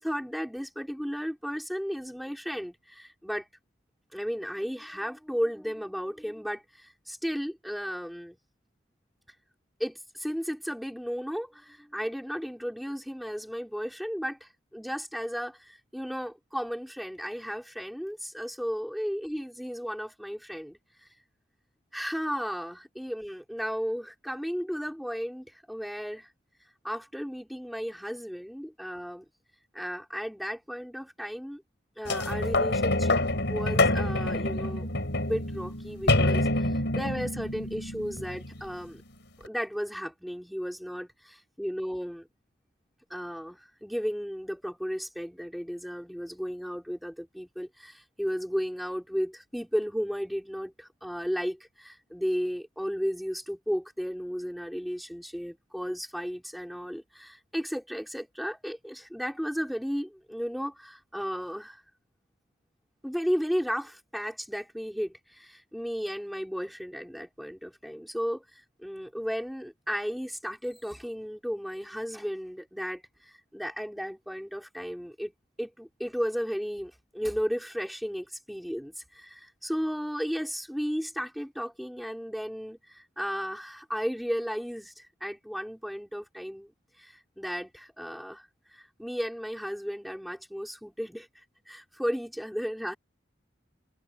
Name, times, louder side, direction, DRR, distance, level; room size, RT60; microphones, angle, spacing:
voice 1, 0.0-3.5 4.1-8.4 9.8-21.1 21.9-26.3 26.8-29.2 29.7-31.6 32.0-33.2 33.5-34.9 35.2-39.0 39.4-42.3 43.1-61.8 63.0-75.3 75.6-93.0, equal, ahead, 3.6 m, -34 dB
sound 1, 32.0-38.8 39.4-39.5, left 2 dB, 65° left, 6.3 m, -27 dB
head